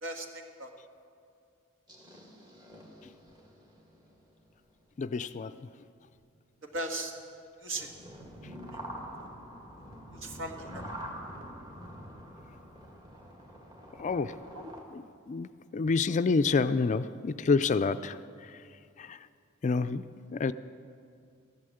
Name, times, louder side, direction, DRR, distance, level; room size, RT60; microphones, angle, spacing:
voice 1, 0.0-0.7 6.7-7.1 7.6-7.9 10.1-10.9 14.5-14.7, right 1 dB, 65° right, 4 dB, 1.7 m, -37 dB
sound 1, 1.9-4.6 5.0-5.2 6.0-6.3 7.0-7.1 7.3-7.4 7.7-14.8, equal, 20° right, 2.0 m, -46 dB
voice 2, 5.0-5.5 14.0-14.4 14.9-18.6 19.0-19.2 19.6-20.0 20.3-20.5, left 4 dB, 35° left, 13 dB, 0.4 m, -28 dB
14.0 x 11.5 x 7.7 m, 2.4 s
head